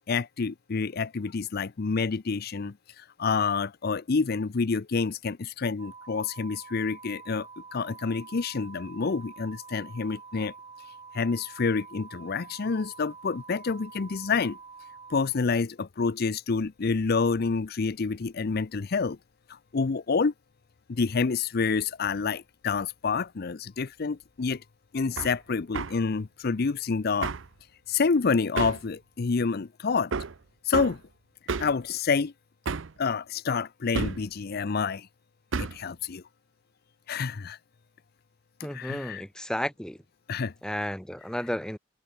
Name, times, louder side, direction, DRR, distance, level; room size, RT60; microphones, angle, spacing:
voice 1, 0.1-10.5 11.1-14.6 15.1-19.2 19.5-20.3 20.9-24.6 24.9-27.3 27.9-30.1 30.6-31.0 31.6-32.3 33.0-35.1 35.6-36.2 37.1-37.6 38.6-39.2 40.3-40.5, left 4 dB, 50° left, 0.5 m, -28 dB
sound 1, 5.8-15.3, right 5 dB, 25° right, 2.3 m, -47 dB
Hammer, 25.2-25.4 25.7-26.0 27.2-27.5 28.6-28.9 30.1-30.4 30.7-31.0 31.5-31.8 32.7-33.0 33.9-34.3 35.5-35.8, right 4 dB, 75° right, 0.7 m, -31 dB
voice 2, 38.6-40.0 40.6-41.8, equal, 5° left, 2.6 m, -32 dB
head